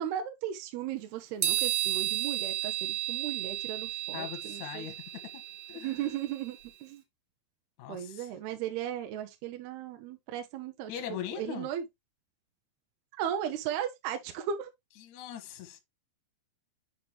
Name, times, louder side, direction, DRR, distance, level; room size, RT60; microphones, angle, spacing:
voice 1, 0.0-4.9 5.8-7.0 7.9-11.8 13.2-14.7, right 10 dB, 75° right, 2.5 m, -36 dB
sound 1, 1.4-6.7, right 13 dB, 60° right, 2.7 m, -33 dB
voice 2, 4.1-5.0 5.7-6.1 7.8-8.3 10.9-11.7 15.0-15.8, left 10 dB, 80° left, 1.6 m, -40 dB
8.0 x 5.0 x 3.0 m
omnidirectional pair, 5.5 m